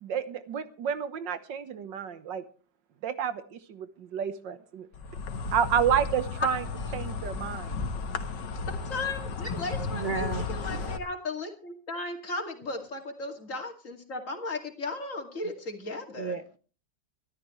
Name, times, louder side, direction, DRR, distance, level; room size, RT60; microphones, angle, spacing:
voice 1, 0.0-2.5 3.0-4.9 5.5-6.7 6.9-7.7, right 8 dB, 75° right, 1.8 m, -30 dB
Insect, 4.9-11.0, left 4 dB, 70° left, 2.0 m, -34 dB
voice 2, 8.7-16.4, left 2 dB, 45° left, 2.8 m, -36 dB
voice 3, 9.9-10.8 16.2-16.6, right 4 dB, 55° right, 0.5 m, -34 dB
24.5 x 13.0 x 3.2 m
omnidirectional pair, 2.0 m